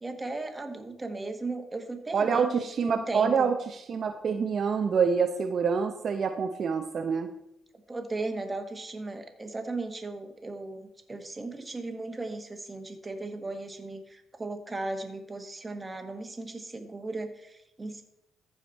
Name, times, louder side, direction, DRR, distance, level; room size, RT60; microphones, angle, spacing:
voice 1, 0.0-3.5 7.9-18.0, right 2 dB, 20° right, 5 dB, 1.4 m, -36 dB
voice 2, 2.1-7.3, right 6 dB, 50° right, 5 dB, 0.6 m, -26 dB
14.5 x 5.0 x 4.1 m, 0.81 s
cardioid pair, 90°, 0 cm